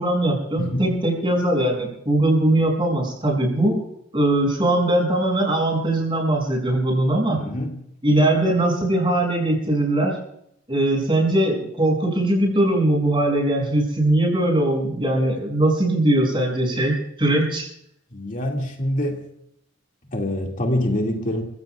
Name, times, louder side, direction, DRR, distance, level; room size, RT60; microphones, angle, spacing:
voice 1, 0.0-3.8 4.1-7.4 8.0-10.2 10.7-17.7, right 1 dB, 25° right, -1 dB, 6.7 m, -20 dB
voice 2, 0.6-1.0 7.4-7.8 18.1-19.2 20.1-21.4, left 1 dB, 45° left, 0 dB, 2.2 m, -25 dB
29.0 x 16.5 x 2.4 m, 0.73 s
head